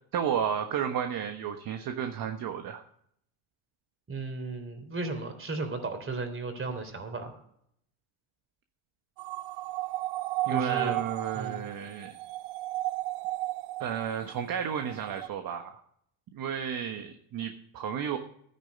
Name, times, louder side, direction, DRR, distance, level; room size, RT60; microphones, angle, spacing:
voice 1, 0.1-2.8 10.4-12.2 13.8-15.8 16.3-18.2, right 8 dB, 45° right, 6 dB, 1.3 m, -32 dB
voice 2, 4.1-7.3 10.5-11.0 11.3-11.7, right 3 dB, 25° right, 7 dB, 3.4 m, -35 dB
sound 1, 9.2-14.3 14.8-15.3, right 17 dB, 60° right, 0.6 m, -34 dB
13.0 x 10.0 x 5.3 m, 0.69 s
supercardioid pair, 105°, 49 cm